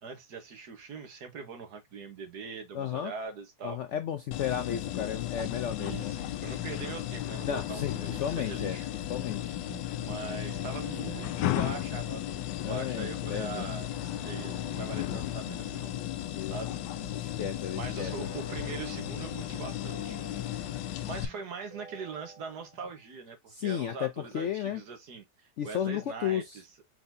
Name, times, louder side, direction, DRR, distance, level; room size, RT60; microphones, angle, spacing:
voice 1, 0.0-3.8 5.8-8.9 10.0-15.9 16.5-16.8 17.8-20.2 21.1-26.7, right 5 dB, 70° right, 1.7 m, -42 dB
voice 2, 2.7-3.1 3.6-6.1 7.4-8.8 9.1-9.5 10.9-11.1 12.6-13.7 16.2-16.5 17.1-18.1 23.5-24.8 25.6-26.6, left 9 dB, 70° left, 0.7 m, -33 dB
sound 1, 4.3-21.2, left 14 dB, 90° left, 1.2 m, -35 dB
sound 2, 10.4-12.9 14.1-17.4 17.9-21.3 21.7-23.0, right 2 dB, 40° right, 0.4 m, -52 dB
sound 3, 21.1-22.9, equal, 20° left, 1.3 m, -51 dB
4.5 x 3.9 x 2.7 m
omnidirectional pair, 1.8 m